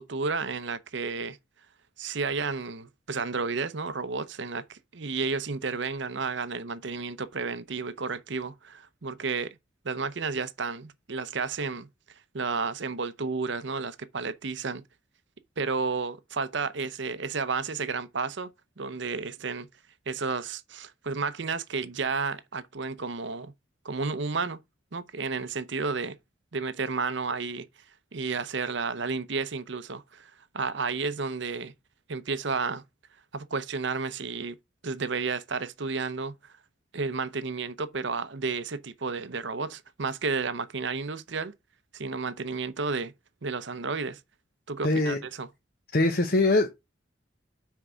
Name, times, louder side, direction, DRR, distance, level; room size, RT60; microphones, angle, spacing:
voice 1, 0.0-1.4 2.0-9.6 9.8-14.8 15.6-18.5 18.8-19.7 20.1-23.5 23.8-24.6 24.9-26.2 26.5-27.7 28.1-31.7 32.1-32.8 33.3-34.6 34.8-36.5 36.9-41.5 41.9-43.1 43.4-44.2 44.7-45.5, right 4 dB, 60° right, 0.7 m, -32 dB
voice 2, 44.8-45.2 45.9-46.7, left 2 dB, 45° left, 0.9 m, -22 dB
6.1 x 4.6 x 6.6 m
head